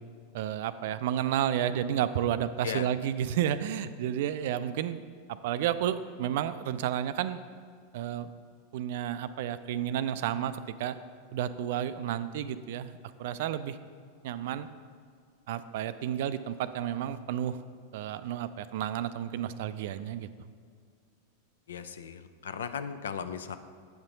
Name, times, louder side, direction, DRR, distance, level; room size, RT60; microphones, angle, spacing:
voice 1, 0.3-5.0 5.4-7.4 7.9-8.3 8.7-11.0 11.3-13.8 14.2-14.7 15.5-17.6 17.9-20.3, right 10 dB, 60° right, 13 dB, 0.3 m, -31 dB
voice 2, 21.7-23.6, left 7 dB, 70° left, 10 dB, 0.4 m, -37 dB
8.6 x 5.7 x 3.9 m, 2.2 s
figure-of-eight pair, 90°, 0 cm